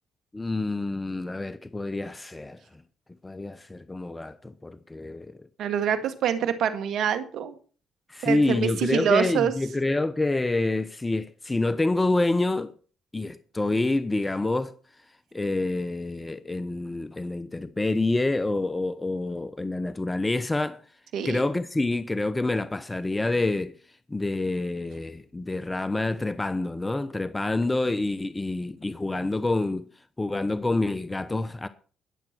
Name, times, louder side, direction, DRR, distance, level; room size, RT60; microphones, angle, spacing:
voice 1, 0.3-2.6 3.2-5.4 8.1-12.7 13.1-14.7 15.3-20.8 21.2-23.7 24.1-29.9 30.2-31.7, left 2 dB, 20° left, 0.9 m, -27 dB
voice 2, 5.6-7.6 8.2-9.5 21.1-21.4, right 8 dB, 70° right, 2.0 m, -25 dB
21.5 x 7.6 x 4.5 m
hypercardioid pair, 55°, 0 cm